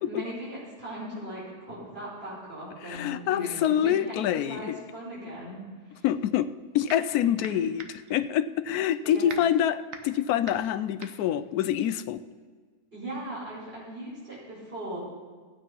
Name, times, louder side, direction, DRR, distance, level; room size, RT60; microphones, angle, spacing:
voice 1, 0.1-6.1 7.4-7.5 9.0-9.3 12.9-15.0, right 1 dB, 40° right, -8 dB, 5.5 m, -39 dB
voice 2, 2.8-4.8 6.0-12.2, left 10 dB, 80° left, 14 dB, 1.1 m, -26 dB
sound 1, 6.4-7.1 7.4-12.4, right 5 dB, 60° right, 1.3 m, -44 dB
15.0 x 9.2 x 5.4 m, 1.5 s
omnidirectional pair, 1.6 m